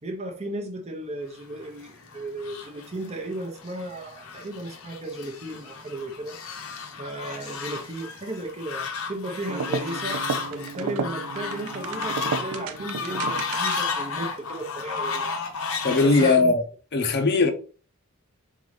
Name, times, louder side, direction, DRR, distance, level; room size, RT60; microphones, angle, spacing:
voice 1, 0.0-6.4 7.0-10.2 10.5-15.3 16.0-16.5, right 1 dB, 30° right, 0.7 m, -35 dB
Fowl, 1.6-16.4, left 4 dB, 75° left, 0.9 m, -33 dB
sound 1, 9.4-14.1, right 5 dB, 80° right, 0.4 m, -32 dB
voice 2, 15.8-16.6 16.9-17.5, left 3 dB, 50° left, 0.6 m, -19 dB
4.0 x 3.8 x 3.2 m
head